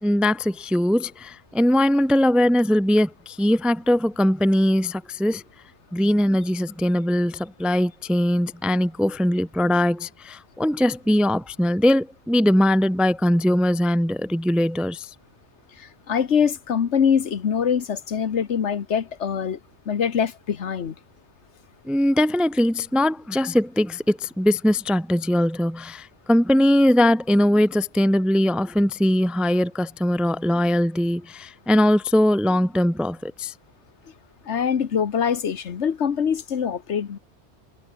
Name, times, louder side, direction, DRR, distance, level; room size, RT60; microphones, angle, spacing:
voice 1, 0.0-5.4 5.9-15.1 21.9-33.5, left 1 dB, ahead, 0.6 m, -21 dB
voice 2, 15.8-19.6 19.9-20.9 34.5-37.2, left 7 dB, 80° left, 1.4 m, -24 dB
omnidirectional pair, 1.2 m